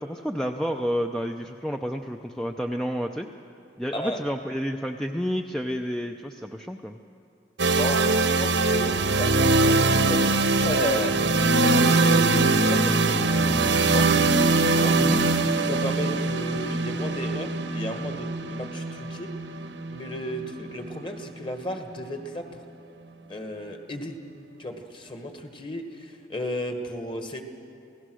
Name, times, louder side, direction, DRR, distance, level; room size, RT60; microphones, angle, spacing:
voice 1, 0.0-3.3 3.8-7.0 15.0-15.2, equal, ahead, 4 dB, 0.5 m, -30 dB
sound 1, 7.6-21.5, right 3 dB, 75° right, 1.1 m, -22 dB
voice 2, 7.8-10.3 10.5-11.1 11.6-14.1 14.7-14.9 15.6-19.3 19.9-22.6 23.3-24.1 24.6-27.4, left 1 dB, 25° left, 5 dB, 1.6 m, -34 dB
28.0 x 17.5 x 6.3 m, 2.4 s
head